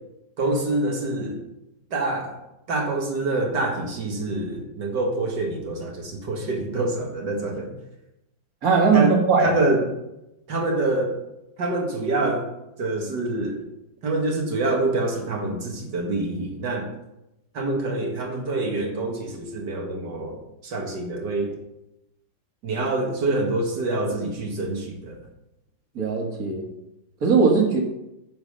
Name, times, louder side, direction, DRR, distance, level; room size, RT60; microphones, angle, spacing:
voice 1, 0.4-1.4 1.9-2.4 2.7-7.7 8.9-9.1 9.4-9.8 10.5-11.1 11.6-12.5 12.8-13.7 14.0-16.9 17.5-21.5 22.6-25.2, right 2 dB, 70° right, 2 dB, 2.4 m, -26 dB
voice 2, 8.6-9.5 26.0-26.6 27.2-27.8, right 5 dB, 50° right, 1 dB, 2.4 m, -19 dB
9.0 x 7.1 x 6.9 m, 0.90 s
omnidirectional pair, 2.0 m